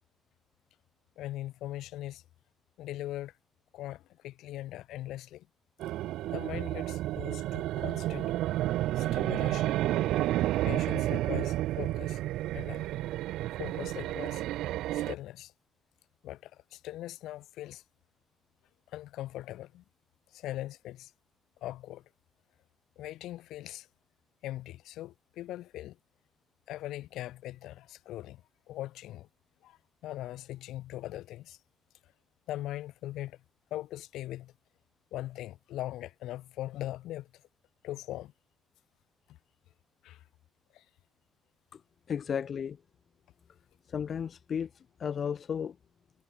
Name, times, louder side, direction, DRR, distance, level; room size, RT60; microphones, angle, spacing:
voice 1, 1.2-2.2 2.8-3.3 3.7-5.5 5.9-6.0 6.3-8.3 8.9-9.7 10.6-12.2 12.5-12.9 13.6-14.4 14.9-15.5 16.2-17.8 18.9-19.8 20.3-21.1 21.6-22.0 23.0-23.9 24.4-26.0 26.7-28.4 28.7-29.3 29.6-31.6 32.5-33.4 33.7-34.5 35.1-37.4 37.8-38.3 39.3-39.4 40.0-40.2 40.7-40.8 42.1-42.2, left 14 dB, 85° left, 6.7 m, -40 dB
sound 1, 5.8-15.1, right 15 dB, 90° right, 1.7 m, -31 dB
voice 2, 42.1-42.8 43.9-44.7 45.0-45.7, left 7 dB, 55° left, 1.1 m, -33 dB
cardioid pair, 90°, 0 cm